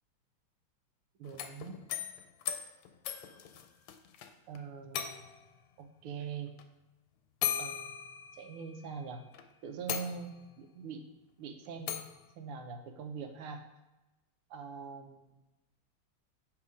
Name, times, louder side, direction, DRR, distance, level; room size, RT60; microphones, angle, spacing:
sound 1, 1.2-4.3 4.5-4.6 4.9-5.5 6.6-6.7 7.4-8.8 9.3-9.4 9.9-10.6 11.9-12.2, left 9 dB, 85° left, 1.5 m, -38 dB
voice 1, 1.2-1.8 4.5-5.2 5.8-6.5 7.6-7.9 8.3-9.3 9.6-11.1 11.4-12.0 12.4-13.6 14.5-15.4, right 5 dB, 90° right, 6 dB, 1.6 m, -43 dB
7.3 x 3.6 x 4.9 m, 1.0 s
omnidirectional pair, 2.4 m